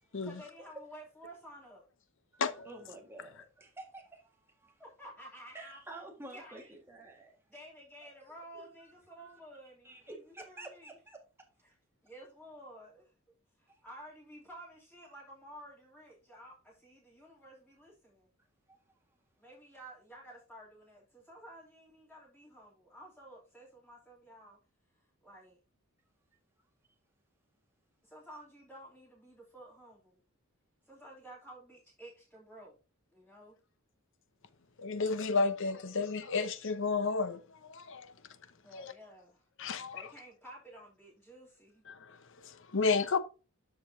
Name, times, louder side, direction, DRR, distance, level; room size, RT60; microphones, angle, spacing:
voice 1, 0.2-1.8 4.8-5.8 6.2-6.7 7.5-10.9 11.6-11.7 12.0-13.1 13.6-18.3 19.4-24.6 25.2-25.6 28.0-30.2 30.8-32.8 33.1-33.6 38.6-39.4 39.9-41.8, right 1 dB, 5° left, 3.0 m, -52 dB
voice 2, 2.3-4.8 5.5-7.4 8.5-8.6 9.2-9.4 9.8-11.2 13.7-13.8 18.7-18.8 36.4-36.5, right 2 dB, 10° right, 1.8 m, -50 dB
voice 3, 34.8-38.1 38.7-38.9 39.6-40.0 41.9-43.2, left 4 dB, 60° left, 0.8 m, -32 dB
12.5 x 5.2 x 2.8 m
head